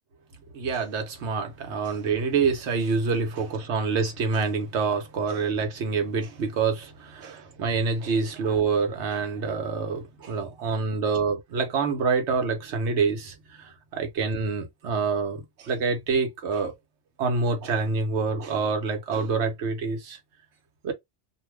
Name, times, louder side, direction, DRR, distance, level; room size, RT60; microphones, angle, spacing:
voice 1, 0.5-16.8 17.2-20.2 20.8-20.9, right 4 dB, 80° right, 1.1 m, -26 dB
2.5 x 2.3 x 3.2 m
omnidirectional pair, 1.2 m